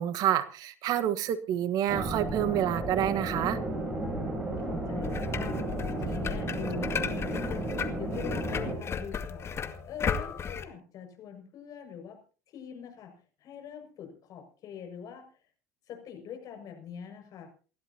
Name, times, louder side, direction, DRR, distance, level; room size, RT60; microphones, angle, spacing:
voice 1, 0.0-3.6, right 11 dB, 50° right, 11 dB, 1.3 m, -28 dB
sound 1, 1.9-8.8, right 1 dB, 20° right, 7.6 m, -33 dB
voice 2, 4.1-7.7 8.0-9.5 9.9-12.2 12.5-15.3 15.9-17.5, left 8 dB, 50° left, 4 dB, 6.2 m, -43 dB
sound 2, 5.0-10.6, left 6 dB, 35° left, 1.9 m, -35 dB
28.5 x 12.5 x 2.8 m, 0.37 s
hypercardioid pair, 75°, 8 cm